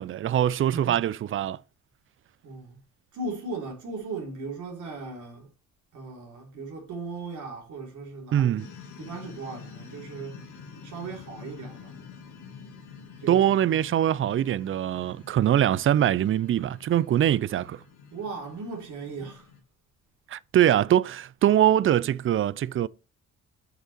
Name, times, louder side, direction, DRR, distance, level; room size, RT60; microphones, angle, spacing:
voice 1, 0.0-1.6 8.3-8.7 13.3-17.8 20.3-22.9, right 11 dB, 45° right, 0.4 m, -23 dB
voice 2, 2.4-2.8 3.1-5.5 5.9-8.7 9.0-10.5 10.8-12.0 13.2-13.8 18.1-19.5, right 3 dB, 75° right, 3.6 m, -37 dB
sound 1, 8.6-19.6, left 6 dB, 80° left, 2.1 m, -47 dB
8.0 x 5.6 x 4.4 m
cardioid pair, 90°, 30 cm